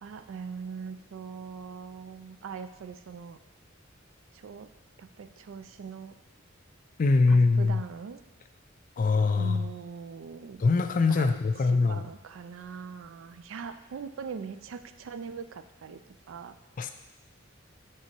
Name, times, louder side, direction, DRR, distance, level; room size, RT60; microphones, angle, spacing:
voice 1, 0.0-3.4 4.3-4.7 5.0-6.2 7.3-8.2 9.4-10.6 11.1-11.4 11.7-16.0 16.3-16.5, right 6 dB, 70° right, 10 dB, 0.4 m, -41 dB
voice 2, 7.0-7.8 9.0-9.7 10.6-12.0 16.8-16.9, left 3 dB, 40° left, 8 dB, 0.4 m, -23 dB
5.9 x 3.7 x 4.4 m, 1.0 s
head